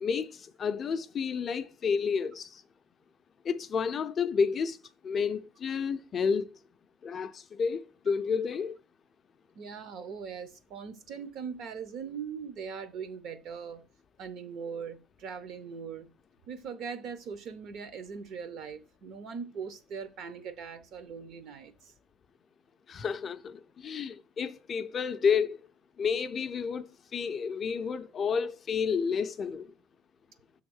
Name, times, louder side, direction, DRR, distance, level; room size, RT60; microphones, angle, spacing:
voice 1, 0.0-0.3 0.6-2.5 3.4-4.8 5.0-6.5 7.0-8.8 22.9-25.6 26.0-26.9 27.1-29.7, left 6 dB, 25° left, 0.4 m, -30 dB
voice 2, 9.6-13.8 14.2-16.1 16.5-21.9, right 6 dB, 45° right, 0.6 m, -40 dB
6.8 x 3.5 x 6.2 m
cardioid pair, 175°, 0 cm